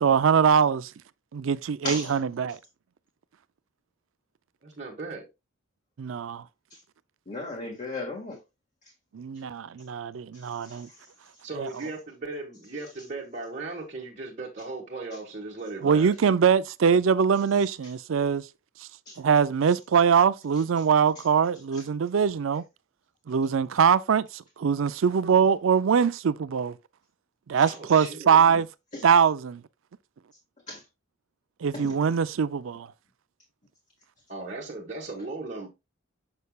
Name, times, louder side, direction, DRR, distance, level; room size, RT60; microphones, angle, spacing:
voice 1, 0.0-0.8 1.3-2.5 6.0-6.4 9.1-10.9 11.6-11.7 15.8-18.4 19.2-22.6 23.3-26.8 27.5-28.7 29.0-29.6 31.6-32.9, right 6 dB, 75° right, 0.4 m, -22 dB
voice 2, 4.6-5.2 11.4-16.1 27.7-28.4 34.3-35.7, right 3 dB, 35° right, 1.4 m, -37 dB
voice 3, 7.3-8.4 19.1-19.2 28.9-29.0 30.7-30.8 31.7-31.9, left 2 dB, 35° left, 1.7 m, -34 dB
6.8 x 6.6 x 2.3 m
head